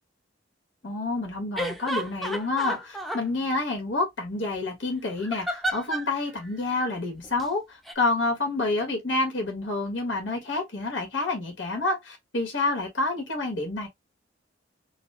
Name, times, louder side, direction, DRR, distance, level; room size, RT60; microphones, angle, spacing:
voice 1, 0.8-13.9, left 2 dB, 85° left, 1.7 m, -28 dB
sound 1, 1.6-3.2 5.2-6.1 7.2-7.4 7.9-8.0, right 1 dB, ahead, 0.5 m, -32 dB
4.0 x 2.4 x 3.5 m
head